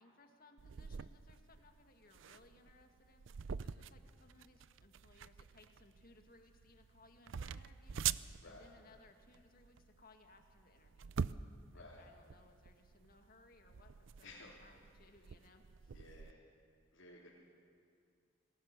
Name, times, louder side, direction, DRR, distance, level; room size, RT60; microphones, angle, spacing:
voice 1, 0.0-11.2 11.7-16.0, left 2 dB, 45° left, 5 dB, 2.0 m, -65 dB
sound 1, 0.6-16.3, right 7 dB, 70° right, 0.5 m, -45 dB
voice 2, 14.2-14.6 15.9-16.4 16.9-17.3, left 2 dB, 75° left, -6 dB, 3.9 m, -56 dB
26.5 x 20.0 x 6.8 m, 2.3 s
head